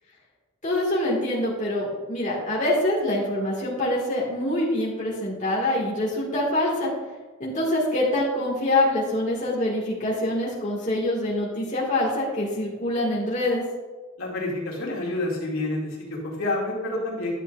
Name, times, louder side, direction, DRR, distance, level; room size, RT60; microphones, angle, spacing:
voice 1, 0.6-6.9 7.4-13.6, left 1 dB, 35° left, -5 dB, 1.9 m, -25 dB
voice 2, 14.2-17.3, left 2 dB, 75° left, -4 dB, 2.3 m, -28 dB
11.5 x 8.1 x 2.5 m, 1.3 s
head